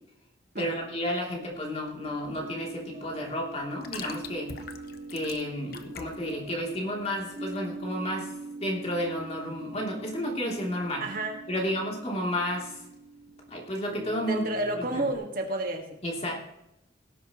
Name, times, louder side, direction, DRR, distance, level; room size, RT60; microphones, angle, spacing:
voice 1, 0.6-4.6 5.1-8.3 8.6-11.1 11.5-12.8 13.5-14.5 14.8-15.0 16.0-16.4, equal, 35° left, -1 dB, 3.2 m, -32 dB
sound 1, 1.3-8.0, left 5 dB, 50° left, 1.0 m, -46 dB
sound 2, 2.0-15.1, right 2 dB, 30° right, 2.0 m, -43 dB
voice 2, 11.0-11.7 14.3-16.0, right 1 dB, 50° right, 3 dB, 1.8 m, -31 dB
18.5 x 10.5 x 3.1 m, 0.85 s
head